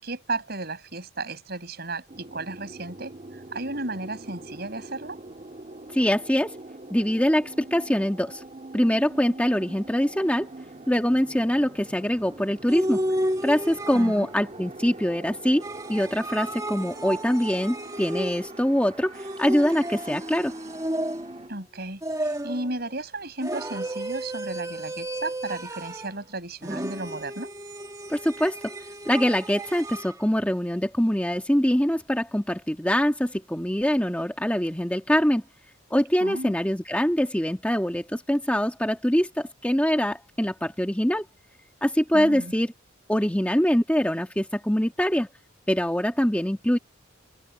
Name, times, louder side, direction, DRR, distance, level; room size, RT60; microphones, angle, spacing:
voice 1, 0.0-3.1 3.5-5.2 13.9-14.3 21.5-27.5 36.2-36.5 42.1-42.5, right 2 dB, 50° right, 7.0 m, -34 dB
sound 1, 2.1-21.5, right 2 dB, 35° right, 1.9 m, -43 dB
voice 2, 5.9-6.6 6.9-8.4 8.7-10.5 10.9-13.0 13.4-15.6 15.9-20.6 28.1-28.7 29.1-35.4 35.9-41.2 41.8-42.7 43.1-45.3 45.7-46.8, equal, 5° left, 1.7 m, -24 dB
sound 2, 12.7-14.4 15.6-18.7 19.1-21.5 22.0-22.7 23.4-26.2 26.6-30.1, right 1 dB, 15° right, 1.9 m, -33 dB
open air
head